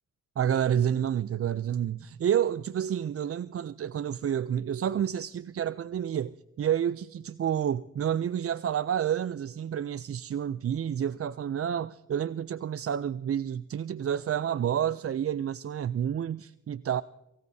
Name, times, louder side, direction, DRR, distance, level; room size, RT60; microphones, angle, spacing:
voice 1, 0.4-17.0, right 9 dB, 45° right, 0.4 m, -29 dB
26.5 x 16.0 x 2.7 m
cardioid pair, 55°, 32 cm